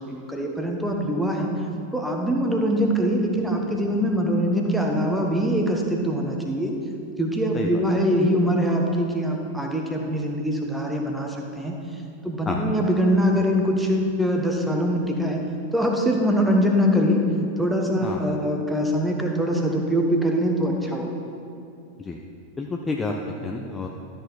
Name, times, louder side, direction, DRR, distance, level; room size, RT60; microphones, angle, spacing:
voice 1, 0.0-1.5 1.9-6.7 7.2-11.8 12.2-15.4 15.7-17.3 17.6-21.2, equal, 5° right, 1 dB, 1.1 m, -23 dB
voice 2, 22.6-23.9, left 3 dB, 15° left, 1 dB, 0.6 m, -29 dB
12.5 x 6.9 x 4.0 m, 2.5 s
figure-of-eight pair, 90°, 0 cm